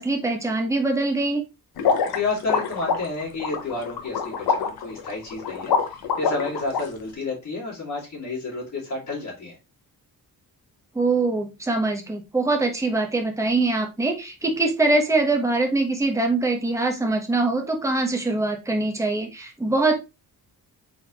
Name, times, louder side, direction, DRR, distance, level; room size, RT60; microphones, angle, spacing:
voice 1, 0.0-1.4 10.9-19.9, right 2 dB, 10° right, 3 dB, 0.9 m, -23 dB
sound 1, 1.8-6.8, left 6 dB, 80° left, 0.9 m, -25 dB
voice 2, 2.1-9.6, left 3 dB, 45° left, -5 dB, 1.9 m, -30 dB
4.1 x 4.1 x 2.8 m, 0.26 s
wide cardioid pair, 145°, 37 cm